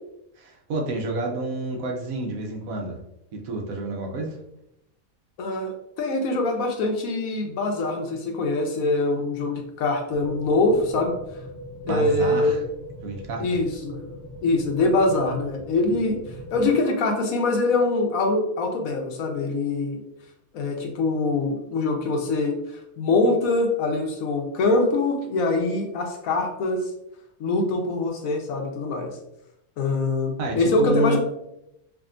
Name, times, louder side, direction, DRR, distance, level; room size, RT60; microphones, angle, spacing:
voice 1, 0.4-3.0 3.3-4.4 11.8-12.6 13.0-13.4 30.4-31.2, right 1 dB, 75° right, 1 dB, 1.1 m, -29 dB
voice 2, 5.4-11.1 11.9-12.6 13.4-16.2 16.5-20.0 20.5-22.5 23.0-26.9 27.4-29.2 29.8-31.2, left 2 dB, 70° left, 2 dB, 1.1 m, -24 dB
sound 1, 10.1-16.7, right 1 dB, 25° right, 1.5 m, -40 dB
4.8 x 2.6 x 2.5 m, 0.82 s
omnidirectional pair, 1.5 m